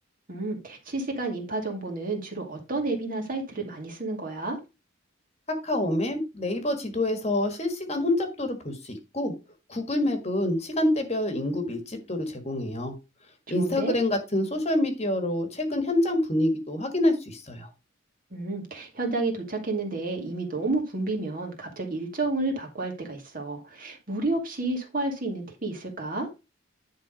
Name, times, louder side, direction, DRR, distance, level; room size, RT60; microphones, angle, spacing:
voice 1, 0.3-4.6 13.5-14.0 18.3-26.3, right 2 dB, 45° right, 2.4 m, -31 dB
voice 2, 5.6-9.3 9.7-12.9 13.5-17.7, left 1 dB, 30° left, 1.6 m, -27 dB
10.5 x 4.0 x 5.1 m
head